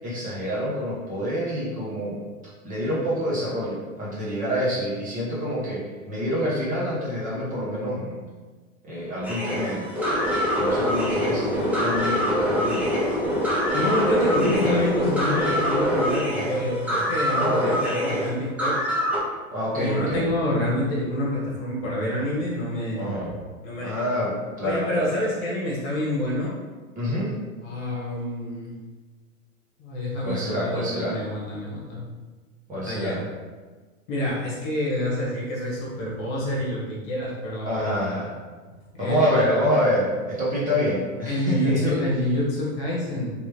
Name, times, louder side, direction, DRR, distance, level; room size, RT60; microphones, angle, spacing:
voice 1, 0.0-2.2 2.6-8.1 8.8-9.8 10.6-12.8 17.2-17.7 19.5-20.3 23.0-23.3 23.8-25.1 27.0-27.3 30.2-31.2 32.7-33.2 37.7-38.3 39.0-42.0, equal, 20° right, -7 dB, 1.0 m, -27 dB
sound 1, 9.2-19.2, equal, 5° right, 0.7 m, -24 dB
voice 2, 13.7-18.8 19.7-23.2 23.6-24.0 24.6-26.6 27.6-28.7 29.8-32.1 32.9-33.2 34.1-37.9 38.9-39.6 41.3-43.3, left 1 dB, 40° left, -4 dB, 1.3 m, -27 dB
3.4 x 3.0 x 3.2 m, 1.4 s
hypercardioid pair, 115°, 43 cm